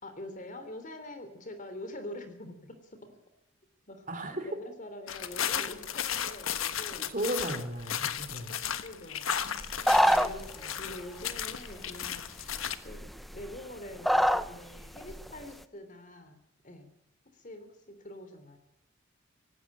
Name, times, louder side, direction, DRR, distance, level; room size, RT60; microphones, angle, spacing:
voice 1, 0.0-3.2 3.9-4.0 4.4-7.1 8.8-16.4 16.6-16.9 17.3-18.6, left 1 dB, 40° left, 8 dB, 3.3 m, -45 dB
voice 2, 4.1-4.5 7.1-8.6, right 1 dB, 40° right, 7 dB, 3.3 m, -35 dB
sound 1, 5.1-12.8, left 9 dB, 90° left, 1.3 m, -35 dB
sound 2, 9.6-10.5 11.7-11.8 12.5-12.6 12.9-13.6 14.0-14.5 14.8-15.3, equal, ahead, 0.7 m, -24 dB
19.0 x 16.0 x 8.7 m, 0.81 s
head